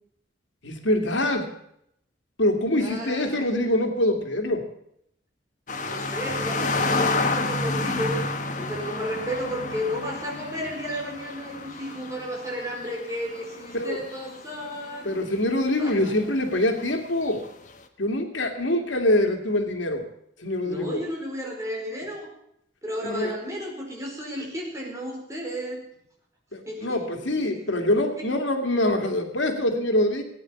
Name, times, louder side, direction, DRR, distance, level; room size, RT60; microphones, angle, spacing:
voice 1, 0.6-1.5 2.4-4.6 13.7-14.0 15.0-17.4 18.0-20.1 20.4-21.0 23.0-23.3 26.5-30.2, left 1 dB, 90° left, 5 dB, 2.3 m, -24 dB
voice 2, 2.8-3.5 5.8-15.2 15.8-16.1 20.6-22.3 22.8-25.8 26.6-27.8 28.2-28.3, equal, 15° right, -1 dB, 4.7 m, -33 dB
sound 1, 5.7-15.2 15.5-15.9 16.8-17.5, left 3 dB, 45° left, 1.4 m, -30 dB
17.5 x 9.5 x 7.1 m, 0.73 s
head